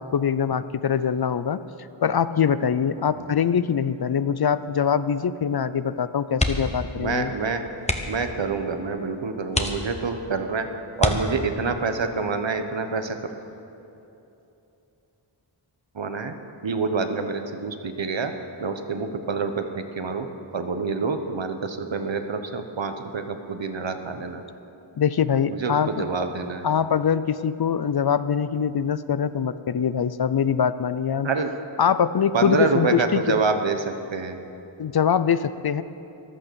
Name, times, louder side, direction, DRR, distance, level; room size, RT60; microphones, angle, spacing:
voice 1, 0.0-1.6 2.0-7.3 24.9-25.9 26.6-31.3 31.8-33.4 34.8-35.8, left 7 dB, 55° left, 14 dB, 0.5 m, -23 dB
sound 1, 6.3-6.9 7.2-7.3 7.8-8.3 8.9-9.0 9.5-10.3 10.9-11.7 13.3-13.6 14.0-14.1, left 2 dB, 15° left, 1.0 m, -27 dB
voice 2, 6.9-7.7 8.0-13.2 15.9-16.3 16.6-18.3 18.6-20.3 20.5-24.4 25.5-26.6 31.2-31.5 32.3-34.4, right 4 dB, 65° right, 7 dB, 1.1 m, -27 dB
14.0 x 11.5 x 6.9 m, 2.9 s
wide cardioid pair, 75°, 48 cm